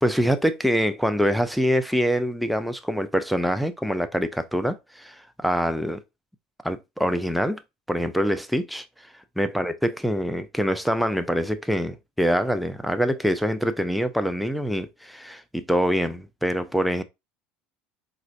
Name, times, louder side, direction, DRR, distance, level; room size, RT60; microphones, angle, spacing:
voice 1, 0.0-6.0 6.6-7.6 7.9-8.9 9.4-17.0, equal, ahead, 0.5 m, -25 dB
4.2 x 2.5 x 2.5 m
hypercardioid pair, 80°, 5 cm